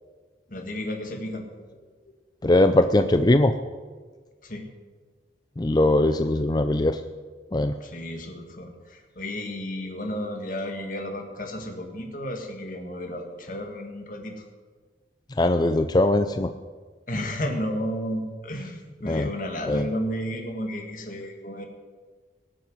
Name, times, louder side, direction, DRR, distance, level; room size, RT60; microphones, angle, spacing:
voice 1, 0.5-1.5 4.4-4.7 7.8-14.3 17.1-21.7, equal, 45° left, 3 dB, 2.0 m, -32 dB
voice 2, 2.4-3.5 5.6-7.0 7.5-7.8 15.4-16.5 19.0-19.3 19.7-19.9, left 1 dB, 20° left, 9 dB, 0.4 m, -20 dB
18.5 x 7.7 x 8.0 m, 1.5 s
head